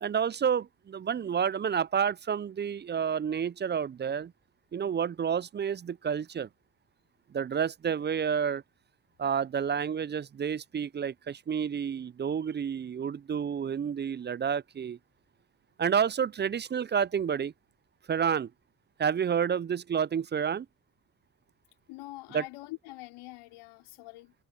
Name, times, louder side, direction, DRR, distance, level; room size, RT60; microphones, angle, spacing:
voice 1, 0.0-4.3 4.7-6.5 7.3-8.6 9.2-15.0 15.8-17.5 18.1-18.5 19.0-20.7 22.3-22.4, right 7 dB, 25° right, 0.4 m, -29 dB
voice 2, 21.9-24.3, left 20 dB, 75° left, 4.0 m, -44 dB
hypercardioid pair, 50°, 49 cm